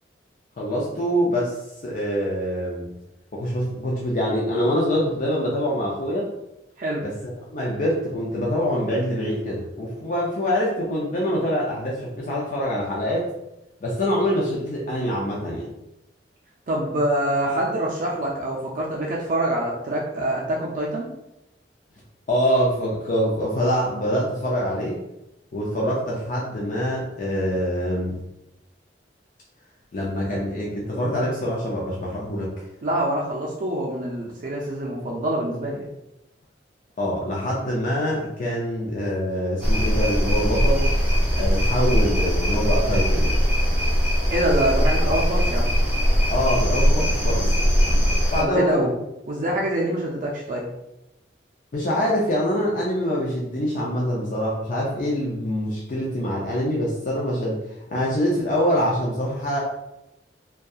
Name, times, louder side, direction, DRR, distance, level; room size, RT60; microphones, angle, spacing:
voice 1, 0.6-1.6 1.8-2.9 3.3-6.3 7.0-7.1 7.5-13.3 13.8-15.7 22.3-25.0 25.5-28.2 29.9-32.5 37.0-40.9 41.4-43.4 46.3-47.7 48.3-48.9 51.7-57.6 57.9-59.6, equal, 50° left, -4 dB, 0.4 m, -24 dB
voice 2, 16.7-21.1 32.8-35.9 44.3-45.7 48.4-48.9 49.3-50.6, right 1 dB, 50° right, -3 dB, 0.4 m, -25 dB
sound 1, 39.6-48.4, equal, 10° right, 0.7 m, -20 dB
2.7 x 2.2 x 2.3 m, 0.90 s
head